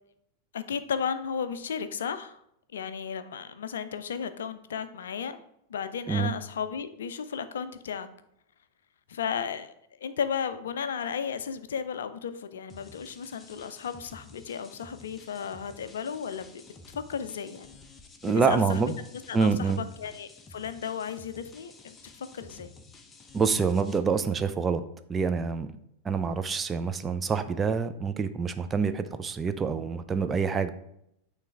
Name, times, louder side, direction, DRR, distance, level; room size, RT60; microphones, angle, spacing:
voice 1, 0.5-2.4 2.7-5.4 5.7-8.1 9.1-9.7 10.0-16.6 17.1-17.8 18.2-18.9 19.3-22.7, left 7 dB, 65° left, 12 dB, 0.4 m, -34 dB
sound 1, 12.7-24.0, left 3 dB, 20° left, 0.7 m, -52 dB
voice 2, 18.2-19.0 19.3-19.8 23.3-24.8 25.1-25.7 26.0-30.7, right 5 dB, 20° right, 9 dB, 0.4 m, -26 dB
8.9 x 3.2 x 3.5 m, 0.75 s
figure-of-eight pair, 90°, 0 cm